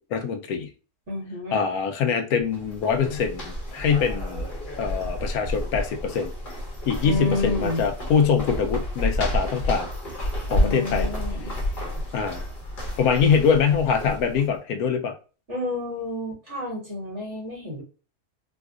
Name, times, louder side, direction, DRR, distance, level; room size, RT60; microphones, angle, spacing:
voice 1, 0.1-0.7 1.5-4.5 4.8-6.3 6.9-9.9 10.5-11.1 12.1-12.5 13.0-15.1, left 6 dB, 80° left, 5 dB, 1.1 m, -23 dB
voice 2, 1.1-1.7 7.0-7.8 10.5-11.5 15.5-17.8, left 2 dB, 50° right, -3 dB, 2.1 m, -30 dB
sound 1, 2.4-14.5, left 1 dB, 40° left, 1.0 m, -30 dB
4.0 x 2.4 x 2.4 m, 0.35 s
omnidirectional pair, 1.6 m